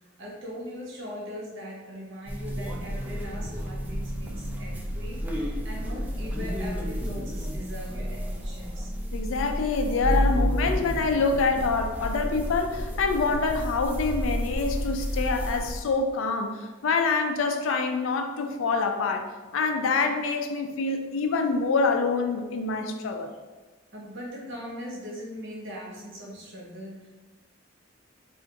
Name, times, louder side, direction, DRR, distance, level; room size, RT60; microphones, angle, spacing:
voice 1, 0.2-8.9 23.9-27.1, equal, 65° right, -3 dB, 1.0 m, -40 dB
sound 1, 2.3-15.8, equal, 10° right, 0.3 m, -30 dB
voice 2, 9.1-23.3, left 4 dB, 70° left, 5 dB, 0.4 m, -26 dB
2.5 x 2.4 x 3.9 m, 1.3 s
head